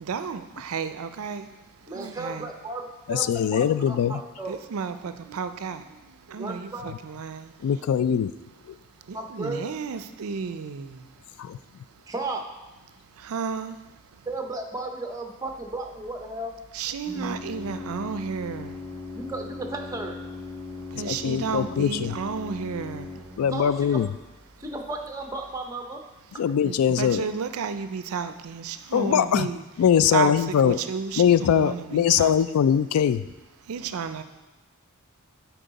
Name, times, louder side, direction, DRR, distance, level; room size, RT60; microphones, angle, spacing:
voice 1, 0.0-2.5 4.5-7.8 8.7-12.1 12.9-14.3 16.7-19.2 20.6-23.4 24.5-24.6 26.3-29.6 30.1-32.3 33.6-34.2, right 5 dB, 75° right, 10 dB, 0.4 m, -33 dB
voice 2, 1.9-4.6 6.4-6.9 9.1-9.7 12.1-12.5 14.3-16.5 19.1-20.2 23.5-24.0 24.6-26.0, right 2 dB, 15° right, 3 dB, 0.7 m, -34 dB
voice 3, 3.1-4.2 7.6-8.3 8.7-8.8 11.4-11.6 21.0-22.1 23.4-24.1 26.4-27.2 28.9-29.5 29.8-30.8 31.2-33.2, left 8 dB, 75° left, 14 dB, 0.3 m, -22 dB
Organ, 15.5-25.6, left 3 dB, 15° left, 1.0 m, -40 dB
10.0 x 4.7 x 4.0 m, 1.1 s
head